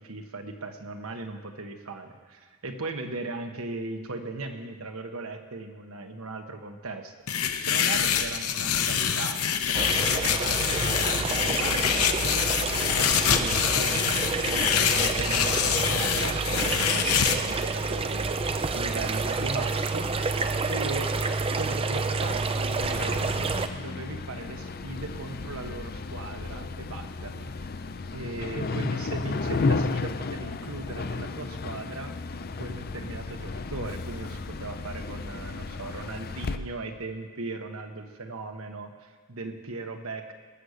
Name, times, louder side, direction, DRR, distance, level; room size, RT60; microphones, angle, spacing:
voice 1, 0.0-12.5 12.9-14.3 14.8-18.4 18.7-20.1 20.7-21.1 21.6-27.7 28.1-32.1 32.6-40.3, right 3 dB, 70° right, 5 dB, 1.3 m, -38 dB
sound 1, 7.3-17.4, left 8 dB, 80° left, 0.9 m, -25 dB
sound 2, 9.7-23.7, right 4 dB, 25° right, 0.5 m, -29 dB
sound 3, 22.8-36.6, left 3 dB, 45° left, 0.5 m, -33 dB
19.5 x 7.1 x 6.6 m, 1.5 s
head